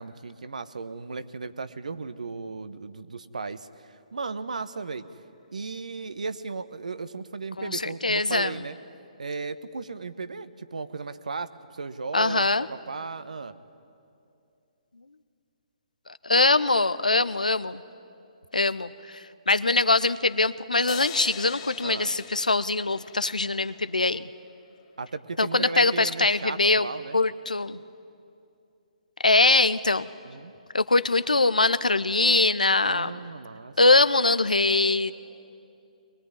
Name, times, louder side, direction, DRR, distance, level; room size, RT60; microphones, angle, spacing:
voice 1, 0.0-3.7 4.1-5.0 5.5-8.8 9.2-13.5 21.8-22.1 25.0-27.2 30.2-30.5 32.8-33.7, right 4 dB, 70° right, 13 dB, 1.1 m, -35 dB
voice 2, 7.6-8.6 12.1-12.7 16.2-17.8 18.5-24.2 25.4-26.9 27.1-27.8 29.2-30.1 30.7-33.3 33.8-35.1, left 3 dB, 85° left, 14 dB, 0.8 m, -22 dB
sound 1, 20.9-24.2, left 9 dB, 35° left, 1.5 m, -42 dB
22.0 x 20.0 x 9.8 m, 2.6 s
figure-of-eight pair, 135°, 4 cm